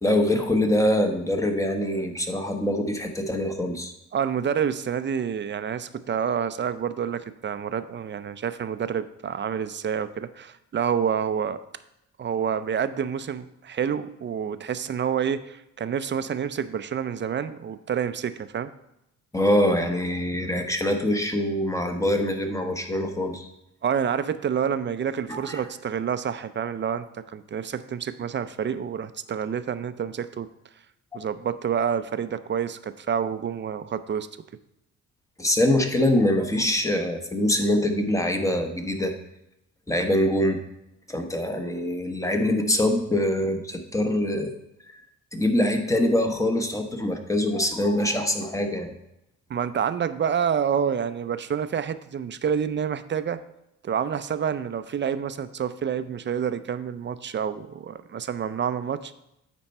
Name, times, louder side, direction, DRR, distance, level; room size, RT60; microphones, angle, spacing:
voice 1, 0.0-3.9 19.3-23.5 25.3-25.6 31.1-31.2 35.4-39.1 39.9-40.6 41.1-44.5 44.9-45.0 45.3-48.9, left 1 dB, 10° left, 5 dB, 1.2 m, -24 dB
voice 2, 4.1-11.6 12.2-18.7 20.6-20.7 23.8-30.5 31.1-34.3 49.5-53.4 53.8-59.1, right 7 dB, 40° right, 12 dB, 0.5 m, -28 dB
8.9 x 4.5 x 5.4 m, 0.84 s
cardioid pair, 90°, 30 cm